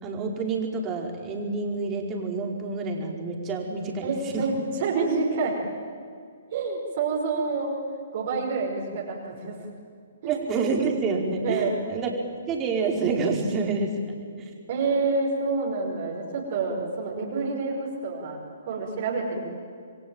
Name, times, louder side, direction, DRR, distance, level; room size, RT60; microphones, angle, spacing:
voice 1, 0.0-4.4 10.3-12.1 12.5-14.5, right 4 dB, 25° right, 1 dB, 4.8 m, -28 dB
voice 2, 4.0-4.5 4.8-5.5 6.5-7.7 8.1-9.5 10.2-10.4 11.4-11.7 14.7-18.4 18.7-19.4, right 4 dB, 50° right, -3 dB, 5.5 m, -27 dB
28.0 x 22.5 x 9.1 m, 2.2 s
figure-of-eight pair, 125°, 0 cm